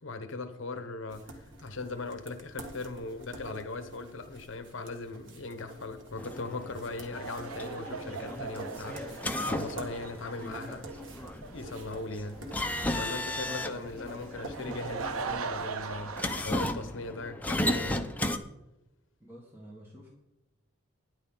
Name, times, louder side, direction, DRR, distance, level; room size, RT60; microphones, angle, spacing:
voice 1, 0.0-10.9 11.5-12.4 12.9-18.1, left 3 dB, 65° left, 1.0 m, -39 dB
sound 1, 1.1-15.9, right 1 dB, 60° right, 1.8 m, -48 dB
sound 2, 6.2-18.4, left 1 dB, 5° left, 0.6 m, -35 dB
sound 3, 7.1-16.5, right 5 dB, 85° right, 0.7 m, -41 dB
voice 2, 19.2-20.1, right 1 dB, 10° right, 1.6 m, -49 dB
13.0 x 10.5 x 3.9 m
head